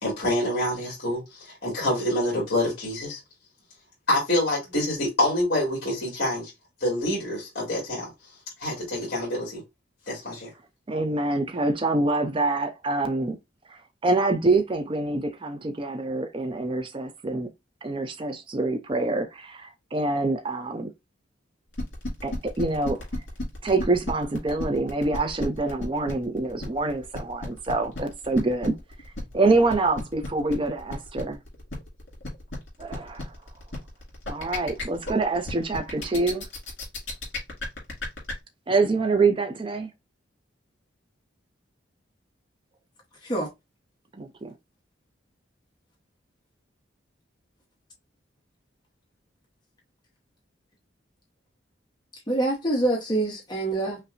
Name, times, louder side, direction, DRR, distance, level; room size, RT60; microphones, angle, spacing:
voice 1, 0.0-3.2 4.1-6.5 6.8-8.1 8.6-9.6 10.1-10.5, left 1 dB, 50° left, 1.9 m, -26 dB
voice 2, 10.9-13.4 13.7-17.5 17.8-20.9 22.2-23.0 23.6-28.8 29.3-31.4 32.8-33.3 34.3-36.4 38.7-39.9 44.1-44.5, right 3 dB, 25° right, 0.4 m, -26 dB
sound 1, 21.7-38.3, left 2 dB, 70° left, 2.1 m, -34 dB
voice 3, 52.3-54.0, right 2 dB, 20° left, 0.9 m, -25 dB
5.4 x 2.1 x 2.5 m
head